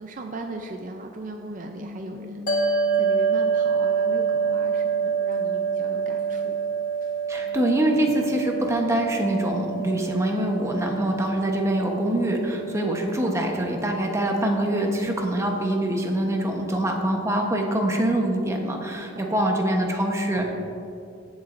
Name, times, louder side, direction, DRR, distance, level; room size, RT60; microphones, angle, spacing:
voice 1, 0.0-6.6 12.6-12.7 19.0-19.4, right 2 dB, 45° right, 4 dB, 0.5 m, -38 dB
sound 1, 1.3-3.4 4.0-6.7 7.3-9.5, left 3 dB, 80° right, 1.8 m, -44 dB
sound 2, 2.5-15.0, right 5 dB, 45° left, 1.2 m, -27 dB
voice 2, 7.3-20.5, right 1 dB, 15° right, 1 dB, 1.0 m, -24 dB
17.0 x 7.1 x 2.6 m, 2.6 s
head